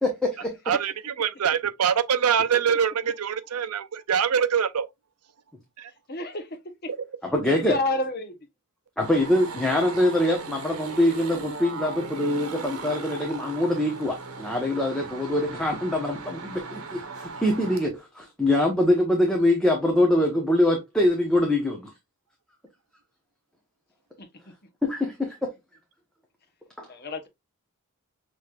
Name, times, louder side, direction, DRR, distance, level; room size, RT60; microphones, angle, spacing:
voice 1, 0.0-0.5 7.3-7.8 9.0-21.9 24.8-25.4 26.8-26.9, left 1 dB, 5° left, 0.9 m, -24 dB
voice 2, 0.7-4.9 5.8-5.9 7.0-7.1, right 7 dB, 90° right, 0.6 m, -24 dB
voice 3, 6.1-6.5 7.4-8.3 26.9-27.3, left 2 dB, 45° left, 1.1 m, -29 dB
sound 1, 9.0-17.9, right 4 dB, 70° right, 1.1 m, -38 dB
6.3 x 3.2 x 2.4 m
head